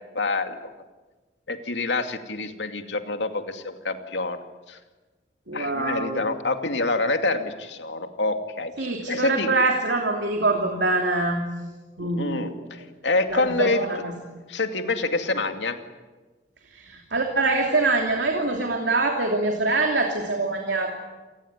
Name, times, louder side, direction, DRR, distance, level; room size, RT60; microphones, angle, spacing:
voice 1, 0.1-0.6 1.5-4.4 4.7-4.8 5.5-9.5 12.0-14.0 14.5-15.8, left 3 dB, 85° left, 6 dB, 2.5 m, -27 dB
voice 2, 5.5-6.2 8.8-11.4 12.0-12.5 13.3-14.1 16.7-20.9, right 3 dB, 80° right, 3 dB, 3.0 m, -24 dB
28.0 x 19.0 x 9.8 m, 1.3 s
head